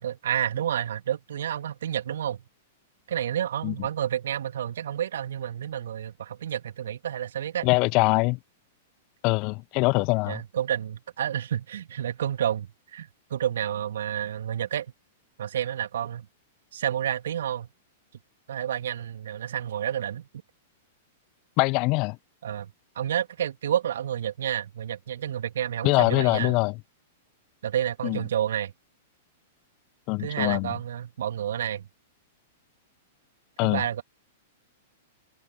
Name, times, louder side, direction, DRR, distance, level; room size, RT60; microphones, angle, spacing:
voice 1, 0.0-2.4 3.1-7.7 10.3-14.9 15.4-16.3 16.7-17.7 18.5-20.3 22.4-26.5 27.6-28.7 30.2-31.9 33.6-34.0, right 10 dB, 65° right, 3.0 m, -30 dB
voice 2, 7.6-8.4 9.2-10.4 21.6-22.2 25.8-26.7 28.0-28.2 30.1-30.7 33.6-33.8, left 27 dB, 40° left, 1.0 m, -23 dB
open air
figure-of-eight pair, 100°, 0 cm